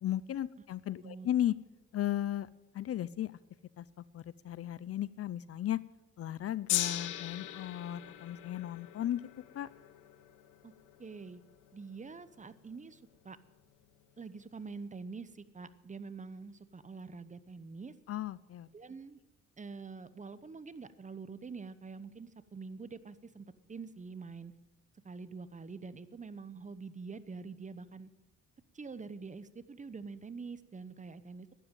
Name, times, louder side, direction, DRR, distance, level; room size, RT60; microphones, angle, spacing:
voice 1, 0.0-1.5 1.9-2.5 2.7-3.3 3.8-5.8 6.2-9.3 9.5-9.7 18.1-18.7, left 12 dB, 50° left, 19 dB, 0.5 m, -35 dB
Gong, 6.7-13.1 13.8-13.9, left 13 dB, 90° left, 1.0 m, -40 dB
voice 2, 11.0-11.4 11.7-13.4 14.2-17.9 18.7-19.2 19.6-24.5 25.0-28.1 28.7-31.5, right 4 dB, 25° right, 15 dB, 0.9 m, -46 dB
12.0 x 10.5 x 9.1 m, 1.1 s
cardioid pair, 90°, 30 cm